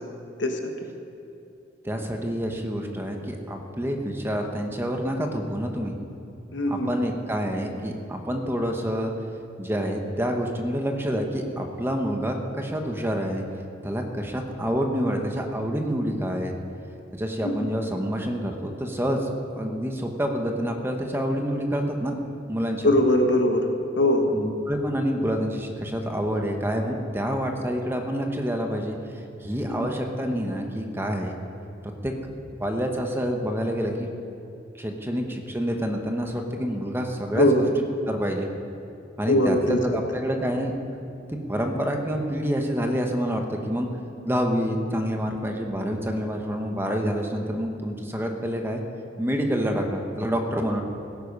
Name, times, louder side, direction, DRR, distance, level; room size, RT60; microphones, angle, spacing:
voice 1, 1.8-5.9 6.7-9.1 9.6-13.4 13.8-16.5 17.1-22.1 22.5-22.9 24.3-31.4 32.0-32.1 32.6-34.1 34.8-37.7 38.1-38.5 39.2-40.7 41.3-43.9 44.2-48.8 49.2-50.8, equal, 10° right, 3 dB, 1.1 m, -27 dB
voice 2, 6.5-6.9 17.4-17.5 22.8-24.3 29.7-29.9 37.3-37.6 39.3-40.0, left 1 dB, 75° left, 4 dB, 1.4 m, -21 dB
17.0 x 10.0 x 5.4 m, 2.7 s
head